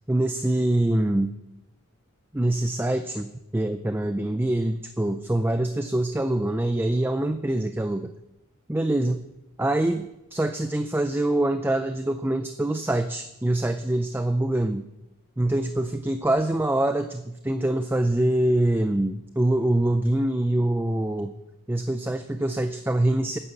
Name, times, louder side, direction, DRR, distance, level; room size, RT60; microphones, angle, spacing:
voice 1, 0.1-1.3 2.3-8.1 8.7-9.2 9.6-14.9 15.4-21.3 21.7-23.4, right 1 dB, 10° right, 8 dB, 0.4 m, -24 dB
12.0 x 9.8 x 7.3 m, 0.91 s
head